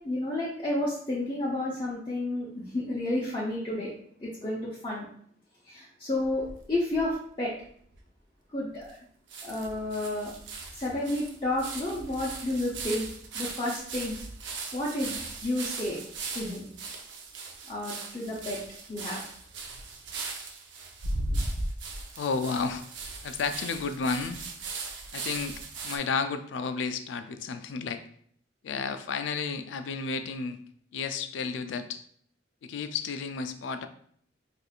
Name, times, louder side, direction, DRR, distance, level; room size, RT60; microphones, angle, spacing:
voice 1, 0.0-3.9 4.2-5.1 5.7-7.5 8.5-9.0 9.4-10.3 10.7-13.1 13.3-14.2 14.5-16.0 16.3-16.7 17.7-18.6 18.9-19.2, left 1 dB, 25° left, -6 dB, 0.6 m, -31 dB
sound 1, 6.2-7.1 7.7-7.8 7.9-8.0 8.9-9.0 9.3-26.0, right 3 dB, 80° right, 0.6 m, -38 dB
voice 2, 22.2-22.9 23.2-24.4 25.1-28.0 28.6-30.6 30.9-32.0 32.6-33.9, left 5 dB, 80° left, 9 dB, 0.3 m, -32 dB
4.3 x 2.5 x 2.4 m, 0.62 s
head